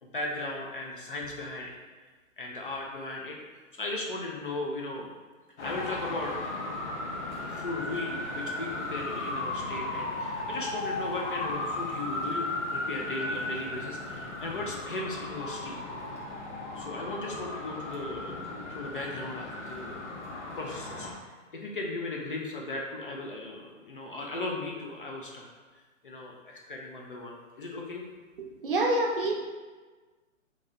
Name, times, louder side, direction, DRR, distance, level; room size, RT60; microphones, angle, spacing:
voice 1, 0.0-1.8 2.4-3.4 3.8-5.1 5.6-6.8 7.4-12.5 12.7-15.8 16.7-20.0 20.6-21.3 21.5-25.5 25.7-28.0, left 2 dB, 40° left, -1 dB, 0.5 m, -37 dB
Traffic noise roadway noise, 5.6-21.1, left 2 dB, 60° left, 0.8 m, -36 dB
voice 2, 28.4-29.3, right 1 dB, 45° right, -1 dB, 0.6 m, -27 dB
3.1 x 2.7 x 3.6 m, 1.4 s
hypercardioid pair, 165°, 40 cm